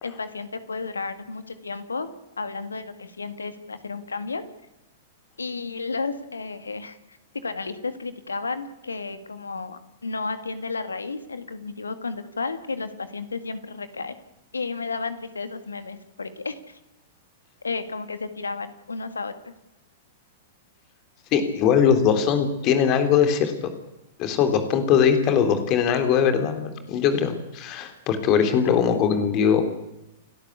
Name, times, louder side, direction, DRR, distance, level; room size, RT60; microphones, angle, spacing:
voice 1, 0.0-2.1 2.4-4.4 5.4-14.2 14.5-16.8 17.6-19.5, left 4 dB, 80° left, 11 dB, 2.0 m, -32 dB
voice 2, 21.3-23.7 24.2-29.6, left 7 dB, 35° left, 7 dB, 3.6 m, -21 dB
29.5 x 12.5 x 8.5 m, 0.92 s
figure-of-eight pair, 100°, 0 cm